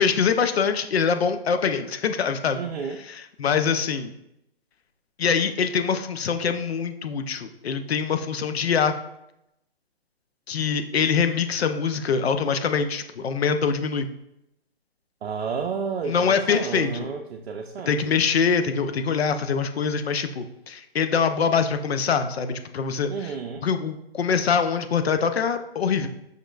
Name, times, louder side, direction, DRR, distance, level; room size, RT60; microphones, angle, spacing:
voice 1, 0.0-2.6 3.0-4.1 5.2-8.9 10.5-14.1 16.0-17.1 17.9-23.4 23.6-26.1, left 6 dB, 80° left, 9 dB, 0.5 m, -24 dB
voice 2, 2.5-3.0 15.2-18.2 23.1-23.7, right 5 dB, 85° right, 3 dB, 0.5 m, -31 dB
5.1 x 3.2 x 2.3 m, 0.83 s
hypercardioid pair, 150°, 31 cm